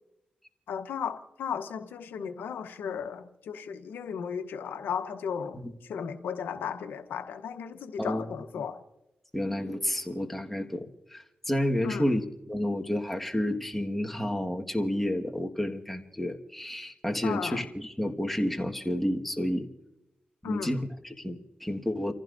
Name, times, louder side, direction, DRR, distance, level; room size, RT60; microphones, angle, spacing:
voice 1, 0.7-8.8 11.8-12.1 17.2-17.7 20.4-20.8, left 7 dB, 90° left, 8 dB, 0.9 m, -35 dB
voice 2, 8.0-8.3 9.3-12.2 12.5-19.7 20.5-22.1, left 1 dB, 5° left, 3 dB, 1.6 m, -30 dB
30.0 x 15.0 x 2.6 m, 0.95 s
cardioid pair, 60°, 3 cm